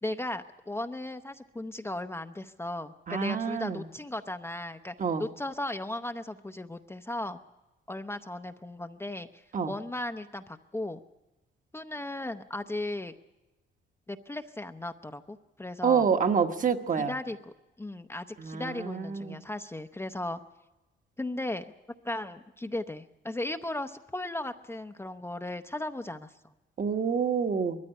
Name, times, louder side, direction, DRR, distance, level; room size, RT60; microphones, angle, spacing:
voice 1, 0.0-4.9 5.2-7.4 7.9-11.0 11.7-13.1 14.1-16.1 17.0-17.5 17.8-20.4 21.2-21.7 22.0-26.3, left 1 dB, 10° left, 7 dB, 0.7 m, -36 dB
voice 2, 3.1-3.8 5.0-5.2 9.5-9.7 15.8-17.1 18.4-19.4 26.8-27.8, right 6 dB, 40° right, 6 dB, 1.3 m, -27 dB
20.5 x 14.0 x 10.0 m, 1.0 s
cardioid pair, 90°, 20 cm